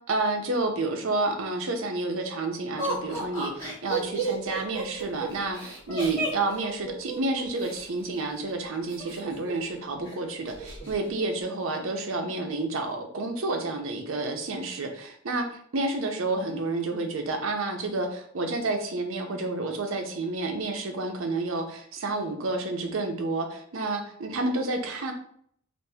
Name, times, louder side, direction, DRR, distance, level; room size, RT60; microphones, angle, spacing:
voice 1, 0.1-15.5 15.7-25.1, right 2 dB, 75° right, 4 dB, 0.6 m, -30 dB
Laughter, 2.8-7.8 8.9-9.7 10.0-10.1 10.5-10.9, right 3 dB, 15° left, 1.4 m, -33 dB
3.4 x 2.5 x 2.7 m, 0.63 s
head